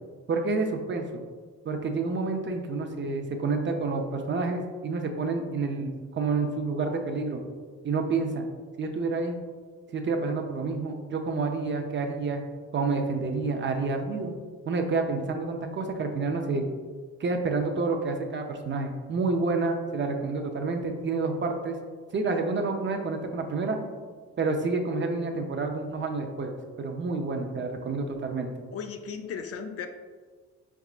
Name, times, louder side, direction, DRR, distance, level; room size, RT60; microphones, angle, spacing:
voice 1, 0.3-1.0 1.7-7.4 7.8-8.4 8.8-9.4 9.9-12.4 12.7-14.4 14.7-16.6 17.2-21.7 22.1-23.8 24.4-26.5 26.8-28.5, right 3 dB, 40° right, 4 dB, 0.5 m, -29 dB
voice 2, 28.7-29.9, left 6 dB, 50° left, 5 dB, 0.4 m, -36 dB
4.7 x 3.6 x 2.4 m, 1.5 s
cardioid pair, 90°, 30 cm